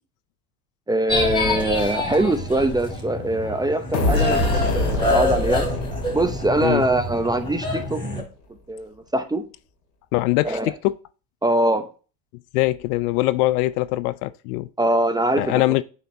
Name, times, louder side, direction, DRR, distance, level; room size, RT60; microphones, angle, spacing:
voice 1, 0.9-5.7 6.1-8.0 8.7-9.4 10.4-10.7 11.4-11.9 14.8-15.6, right 1 dB, 10° right, 0.7 m, -22 dB
sound 1, 1.1-8.2, left 2 dB, 10° left, 2.8 m, -27 dB
sound 2, 3.9-7.6, left 2 dB, 90° left, 2.3 m, -25 dB
voice 2, 10.1-10.9 12.5-14.7 15.4-15.8, left 18 dB, 65° left, 0.5 m, -22 dB
8.1 x 4.4 x 2.7 m
hypercardioid pair, 90°, 49 cm